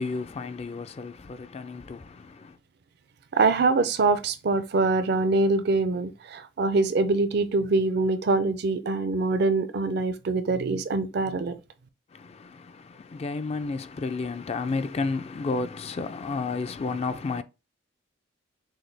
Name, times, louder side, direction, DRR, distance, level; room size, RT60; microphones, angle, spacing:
voice 1, 0.0-2.6 12.1-17.4, left 4 dB, 30° left, 0.3 m, -32 dB
voice 2, 3.3-11.5, right 3 dB, 55° right, 0.5 m, -24 dB
6.2 x 2.2 x 3.3 m
head